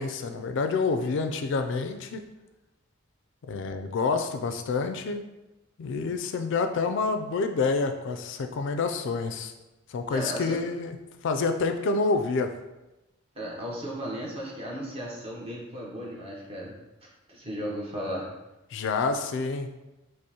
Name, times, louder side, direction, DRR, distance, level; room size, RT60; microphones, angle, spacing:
voice 1, 0.0-2.2 3.5-5.2 5.8-9.5 9.9-10.9 11.2-12.5 18.7-19.7, left 4 dB, 65° left, 7 dB, 0.3 m, -28 dB
voice 2, 10.1-10.6 13.3-16.7 17.3-18.3, equal, 30° right, -4 dB, 0.8 m, -35 dB
5.1 x 2.0 x 2.8 m, 1.0 s
head